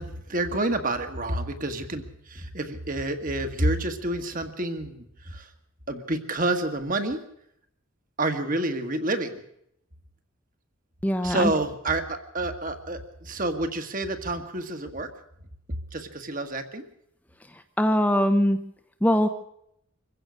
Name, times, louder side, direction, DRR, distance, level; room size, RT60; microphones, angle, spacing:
voice 1, 0.0-5.5 5.9-7.2 8.2-9.3 11.2-15.1 15.9-16.8, right 2 dB, 40° right, 7 dB, 1.8 m, -29 dB
voice 2, 11.0-11.5 17.8-18.6 19.0-19.3, equal, 5° left, 7 dB, 0.9 m, -21 dB
25.5 x 15.5 x 6.5 m, 0.75 s
head